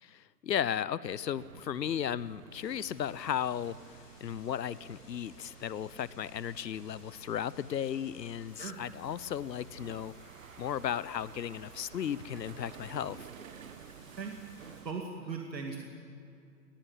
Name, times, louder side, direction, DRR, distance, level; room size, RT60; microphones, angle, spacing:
voice 1, 0.0-3.8 4.2-10.1 10.6-13.3, left 9 dB, 80° left, 20 dB, 0.9 m, -35 dB
sound 1, 1.4-14.9, right 8 dB, 55° right, 1.3 m, -52 dB
sound 2, 2.6-14.8, left 3 dB, 25° left, 5.5 m, -60 dB
voice 2, 14.8-15.8, right 5 dB, 85° right, 2 dB, 2.4 m, -38 dB
19.5 x 16.0 x 9.6 m, 2.5 s
hypercardioid pair, 145°, 49 cm